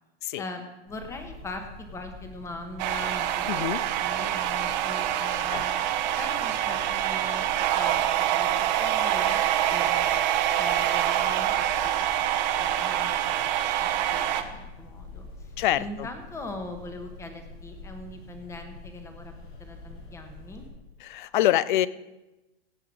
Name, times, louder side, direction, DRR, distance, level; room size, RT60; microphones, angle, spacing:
voice 1, 0.4-3.7 4.0-5.8 6.2-7.4 7.7-10.0 10.6-13.2 13.4-13.5 13.8-15.5 15.8-19.3 19.6-20.6, left 2 dB, 10° left, 6 dB, 1.2 m, -41 dB
sound 1, 0.9-20.7, left 3 dB, 75° left, 5.3 m, -46 dB
sound 2, 2.8-14.4, right 12 dB, 45° right, 1.0 m, -26 dB
voice 2, 3.5-3.8 5.5-5.6 15.6-16.1 21.0-21.9, left 13 dB, 50° left, 19 dB, 0.6 m, -25 dB
16.5 x 8.0 x 4.8 m, 1.0 s
hypercardioid pair, 155°, 32 cm